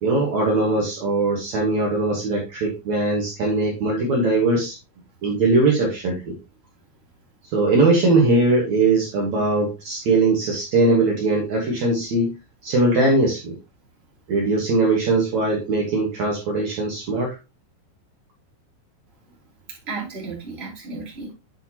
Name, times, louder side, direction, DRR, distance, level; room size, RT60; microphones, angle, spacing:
voice 1, 0.0-4.8 5.2-6.4 7.5-12.3 12.6-13.6 14.3-17.4, right 2 dB, 75° right, -1 dB, 1.6 m, -20 dB
voice 2, 19.7-21.3, right 4 dB, 15° right, -4 dB, 2.2 m, -34 dB
9.4 x 6.0 x 2.9 m, 0.26 s
omnidirectional pair, 5.7 m